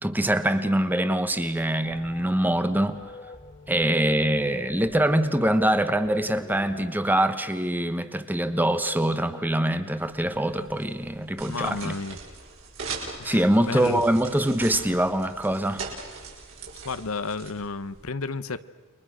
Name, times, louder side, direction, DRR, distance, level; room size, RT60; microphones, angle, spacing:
voice 1, 0.0-3.0 3.7-11.9 13.2-15.9, right 1 dB, 10° right, 1.1 m, -24 dB
sound 1, 1.8-6.9, left 2 dB, 30° left, 1.7 m, -44 dB
sound 2, 10.0-18.1, right 4 dB, 65° right, 6.0 m, -41 dB
voice 2, 11.5-12.2 13.2-14.0 16.8-18.6, left 4 dB, 85° left, 1.0 m, -32 dB
29.5 x 23.0 x 6.4 m
head